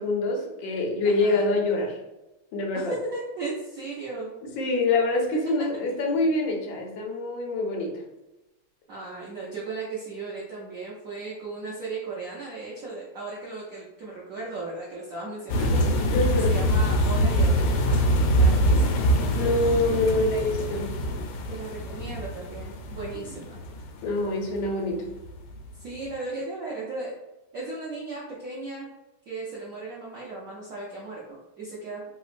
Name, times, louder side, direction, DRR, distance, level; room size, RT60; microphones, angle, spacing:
voice 1, 0.0-2.0 2.5-2.9 4.4-8.0 16.1-16.5 19.3-20.9 23.2-23.4 24.0-25.1, left 2 dB, 75° left, 1 dB, 1.4 m, -25 dB
voice 2, 1.0-1.5 2.7-4.3 8.9-18.0 18.3-19.0 21.5-23.6 25.8-27.1 27.5-28.9 29.3-32.1, right 3 dB, 90° right, -5 dB, 0.7 m, -36 dB
sound 1, 15.5-24.6 25.1-25.3 25.6-25.7, equal, 90° left, 1.5 m, -24 dB
3.5 x 2.9 x 2.4 m, 0.97 s
omnidirectional pair, 2.3 m